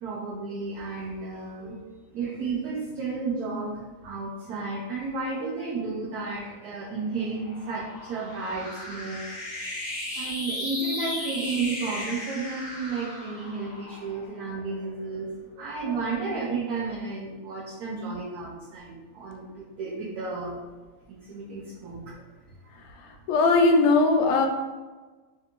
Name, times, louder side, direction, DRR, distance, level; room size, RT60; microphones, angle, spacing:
voice 1, 0.0-3.8 4.0-9.2 10.2-15.3 15.6-20.6 21.1-22.1, right 4 dB, 70° right, -5 dB, 1.1 m, -32 dB
sound 1, 6.5-15.2, left 1 dB, 45° left, 0.5 m, -36 dB
voice 2, 23.3-24.5, left 3 dB, 75° left, 2 dB, 1.0 m, -19 dB
3.4 x 2.5 x 2.9 m, 1.3 s
omnidirectional pair, 1.8 m